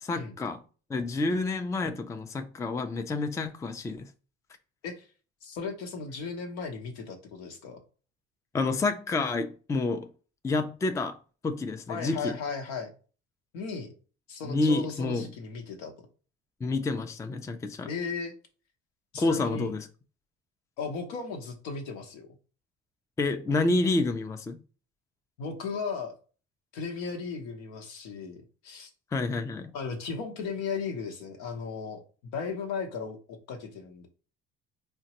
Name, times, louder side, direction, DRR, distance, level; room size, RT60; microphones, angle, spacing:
voice 1, 0.0-0.6 0.9-4.1 8.5-10.1 10.4-11.2 11.4-12.3 14.5-15.3 16.6-17.9 19.1-19.9 23.2-24.6 29.1-29.7, left 3 dB, 10° left, 0.3 m, -29 dB
voice 2, 5.4-7.8 11.9-12.9 13.5-13.9 14.3-15.9 17.9-18.3 19.1-19.7 20.8-22.3 25.4-26.1 26.7-28.9 29.7-32.0 32.3-34.1, left 5 dB, 80° left, 0.9 m, -36 dB
3.7 x 2.2 x 2.9 m
supercardioid pair, 75°, 31 cm